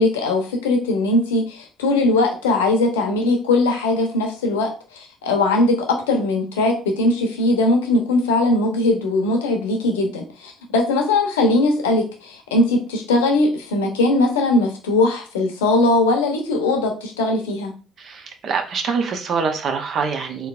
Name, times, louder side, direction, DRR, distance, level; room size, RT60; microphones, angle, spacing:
voice 1, 0.0-17.7, left 2 dB, 80° left, 4 dB, 0.7 m, -20 dB
voice 2, 18.0-20.5, right 5 dB, 50° right, 5 dB, 0.7 m, -24 dB
3.4 x 3.1 x 2.4 m, 0.37 s
hypercardioid pair, 55°, 0 cm